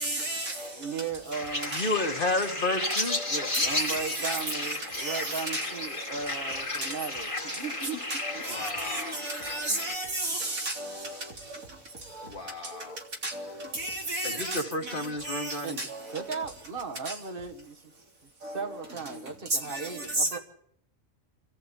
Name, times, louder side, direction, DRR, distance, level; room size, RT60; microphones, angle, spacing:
voice 1, 0.0-0.7 1.7-1.8 3.0-3.2 3.5-4.4 5.0-5.6 6.8-6.9 8.1-8.2 8.5-11.2 12.2-12.3 13.2-14.6 15.2-16.0 18.4-18.5 19.7-19.8 20.2-20.4, right 1 dB, 85° right, 4.0 m, -33 dB
voice 2, 0.8-1.7 3.3-7.3 7.6-8.1 8.3-8.4 9.7-9.9 15.6-18.0 18.4-20.4, right 5 dB, 40° right, 2.0 m, -36 dB
sound 1, 1.3-10.0, left 2 dB, 25° left, 2.0 m, -33 dB
voice 3, 1.7-3.2 8.5-9.2 12.2-13.0 14.2-15.8, left 2 dB, 40° left, 1.9 m, -31 dB
26.5 x 14.0 x 8.4 m
omnidirectional pair, 1.4 m